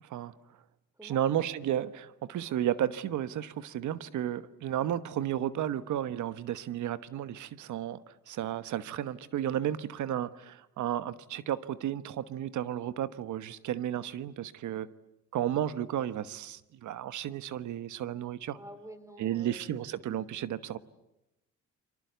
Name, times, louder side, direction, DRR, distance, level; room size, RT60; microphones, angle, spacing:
voice 1, 1.0-14.9 15.3-18.6 19.2-20.8, right 11 dB, 75° right, 1.3 m, -33 dB
voice 2, 18.5-19.8 20.7-20.8, right 1 dB, 10° right, 4.5 m, -49 dB
29.5 x 24.5 x 8.1 m
cardioid pair, 90°, 30 cm